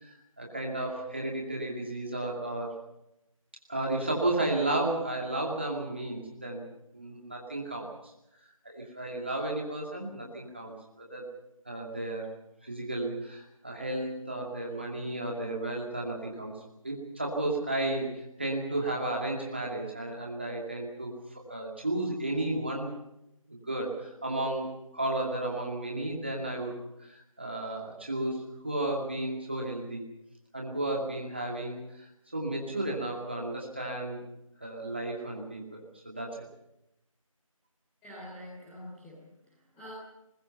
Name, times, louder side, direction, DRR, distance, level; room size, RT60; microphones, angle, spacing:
voice 1, 0.0-2.8 3.7-6.7 6.9-8.1 8.6-11.3 11.7-12.3 12.6-16.5 16.8-22.9 23.5-26.8 27.1-30.0 30.5-34.2 34.6-36.5, right 2 dB, 20° right, -1 dB, 2.4 m, -33 dB
voice 2, 38.0-39.9, left 1 dB, ahead, -14 dB, 3.5 m, -46 dB
23.0 x 21.0 x 5.7 m, 0.86 s
figure-of-eight pair, 180°, 18 cm